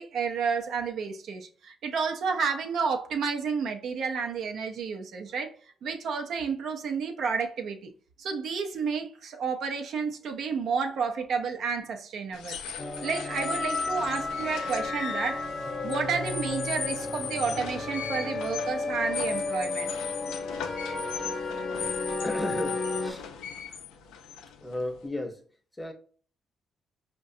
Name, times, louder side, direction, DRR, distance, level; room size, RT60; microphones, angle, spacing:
voice 1, 0.0-5.5 5.8-7.9 8.2-12.6 13.0-15.4 15.8-19.9, right 5 dB, 70° right, 0.5 m, -31 dB
sound 1, 12.3-25.1, left 7 dB, 85° left, 0.4 m, -38 dB
sound 2, 12.8-23.1, left 3 dB, 55° left, 0.8 m, -33 dB
voice 2, 22.2-23.3 24.6-25.4 25.7-25.9, left 1 dB, 10° left, 0.7 m, -34 dB
4.7 x 2.2 x 2.6 m
supercardioid pair, 65°, 0 cm